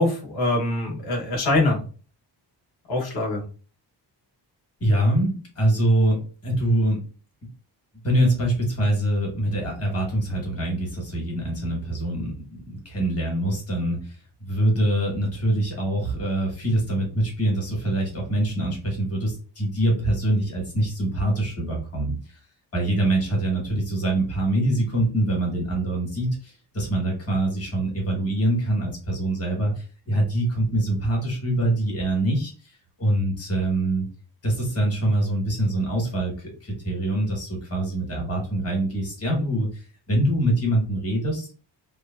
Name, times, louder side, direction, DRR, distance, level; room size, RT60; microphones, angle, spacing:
voice 1, 0.0-1.8 2.9-3.4, left 2 dB, 60° left, 0 dB, 1.0 m, -23 dB
voice 2, 4.8-7.0 8.0-22.4 22.7-34.1 34.4-41.5, right 1 dB, 35° left, -1 dB, 1.2 m, -24 dB
3.1 x 2.0 x 2.3 m, 0.37 s
wide cardioid pair, 155°, 43 cm